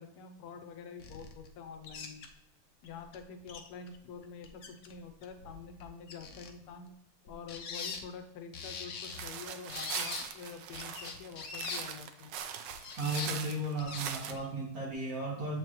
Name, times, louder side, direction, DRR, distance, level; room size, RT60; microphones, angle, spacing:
voice 1, 0.0-2.3 2.8-7.0 7.2-12.3, left 5 dB, 85° left, 8 dB, 1.6 m, -47 dB
sound 1, 1.0-1.5 1.8-2.3 2.8-2.9 3.1-3.2 3.5-3.9 4.2-4.9 5.2-6.5 7.3-8.0 8.5-9.3 9.7-10.2 10.7-11.8 12.7-13.3 13.8-14.0 14.3-14.5, left 5 dB, 70° left, 0.8 m, -42 dB
sound 2, 9.0-14.3, right 8 dB, 70° right, 1.1 m, -41 dB
voice 2, 13.0-15.6, right 1 dB, 45° right, -3 dB, 1.9 m, -35 dB
7.1 x 5.0 x 3.0 m, 0.86 s
omnidirectional pair, 2.3 m